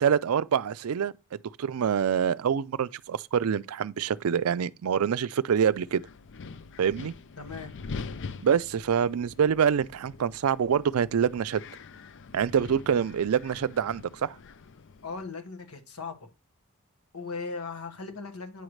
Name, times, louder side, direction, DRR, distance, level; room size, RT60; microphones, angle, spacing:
voice 1, 0.0-6.0 6.8-7.1 8.4-11.6 12.3-14.4, right 7 dB, 75° right, 0.4 m, -26 dB
Wind, 5.7-15.2, left 4 dB, 60° left, 0.5 m, -44 dB
voice 2, 7.4-7.7 15.0-16.3 17.1-18.6, left 4 dB, 85° left, 1.4 m, -38 dB
9.1 x 6.4 x 3.2 m
head